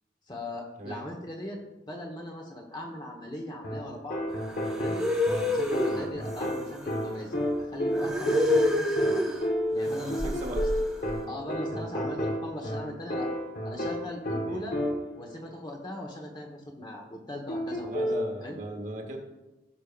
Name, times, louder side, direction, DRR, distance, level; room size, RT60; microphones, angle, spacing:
voice 1, 0.3-1.6 1.9-4.2 4.7-5.0 5.4-9.3 9.7-10.7 11.3-13.3 13.6-14.8 15.1-18.1 18.4-18.6, left 1 dB, 25° left, 1 dB, 1.2 m, -39 dB
sound 1, 3.6-15.3 17.5-18.3, equal, 45° left, 1.4 m, -31 dB
sound 2, 4.4-7.1 7.9-9.4 9.8-11.1, left 2 dB, 5° right, 1.1 m, -29 dB
voice 2, 10.1-10.7 14.4-14.7 17.9-19.2, right 1 dB, 40° right, 2 dB, 1.5 m, -38 dB
16.5 x 6.5 x 2.5 m, 1.1 s
head